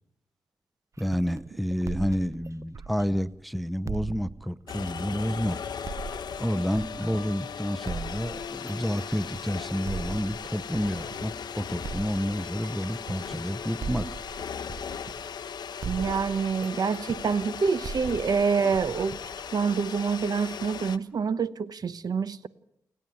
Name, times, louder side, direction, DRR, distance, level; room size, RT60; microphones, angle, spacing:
voice 1, 1.0-5.6 6.4-14.1, equal, ahead, 0.7 m, -29 dB
sound 1, 1.0-3.4 3.9-7.4 7.9-11.4 11.8-15.5 15.8-19.9, right 5 dB, 45° right, 0.7 m, -40 dB
sound 2, 4.7-21.0, left 7 dB, 70° left, 1.0 m, -38 dB
voice 2, 15.8-19.2 19.5-22.5, right 5 dB, 60° right, 1.0 m, -27 dB
29.0 x 11.0 x 9.4 m
cardioid pair, 60°, 8 cm